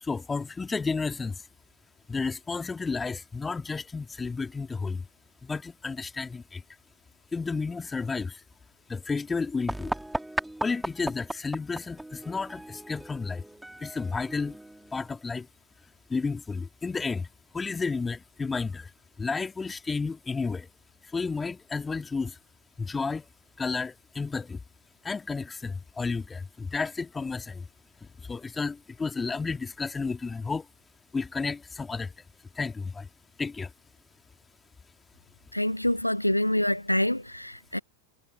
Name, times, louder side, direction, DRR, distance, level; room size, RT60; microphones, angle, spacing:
voice 1, 0.0-1.4 2.1-5.1 5.4-6.6 7.3-8.4 8.9-9.9 10.6-13.4 13.8-14.6 14.9-15.5 16.1-17.3 17.5-18.9 19.2-20.7 21.1-22.4 22.8-23.2 23.6-24.6 25.0-27.6 28.0-30.7 31.1-32.1 32.6-33.1 33.4-33.7, left 4 dB, 15° left, 2.6 m, -32 dB
sound 1, 9.7-15.2, right 1 dB, 5° right, 3.5 m, -37 dB
voice 2, 35.5-37.8, left 1 dB, 90° left, 1.1 m, -26 dB
figure-of-eight pair, 90°, 0 cm